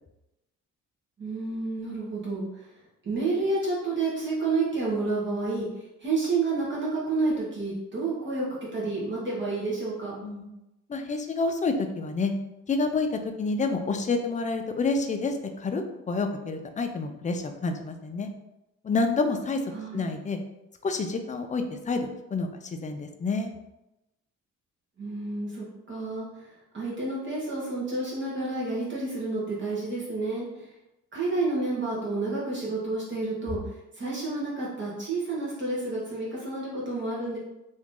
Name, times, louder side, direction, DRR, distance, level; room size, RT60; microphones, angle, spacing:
voice 1, 1.2-2.7 3.0-8.5 8.7-10.2 19.7-20.1 25.0-30.6 31.1-33.6 33.9-37.4, right 3 dB, 40° right, -6 dB, 1.2 m, -30 dB
voice 2, 10.9-12.3 12.7-13.1 13.4-15.8 16.1-18.3 18.8-19.6 19.9-20.4 20.8-23.5, left 3 dB, 25° left, 5 dB, 0.4 m, -28 dB
2.9 x 2.6 x 3.6 m, 0.93 s
cardioid pair, 90°, 30 cm